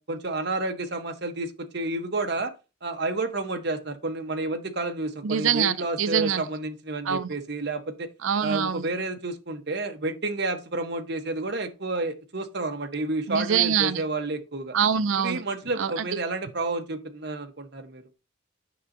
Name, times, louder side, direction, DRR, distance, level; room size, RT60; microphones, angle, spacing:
voice 1, 0.0-2.5 2.8-8.1 8.4-14.7 15.2-18.0, right 2 dB, 55° right, 1.0 m, -30 dB
voice 2, 5.2-6.4 7.1-7.3 8.2-8.8 13.3-14.0 14.7-15.4 15.8-16.0, right 7 dB, 75° right, 0.5 m, -24 dB
9.3 x 6.1 x 2.7 m
head